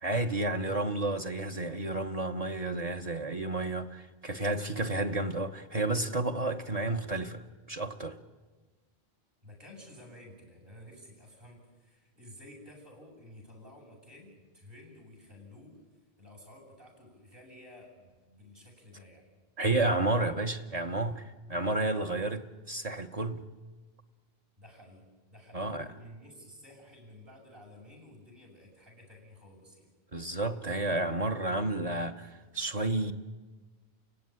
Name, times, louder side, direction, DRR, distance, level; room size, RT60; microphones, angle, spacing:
voice 1, 0.0-8.2 19.6-23.4 25.5-25.9 30.1-33.1, right 2 dB, 40° right, 1.1 m, -31 dB
voice 2, 9.4-15.8 16.2-19.3 24.6-29.9, left 1 dB, 60° right, 8.2 m, -52 dB
29.5 x 17.0 x 9.9 m
omnidirectional pair, 1.0 m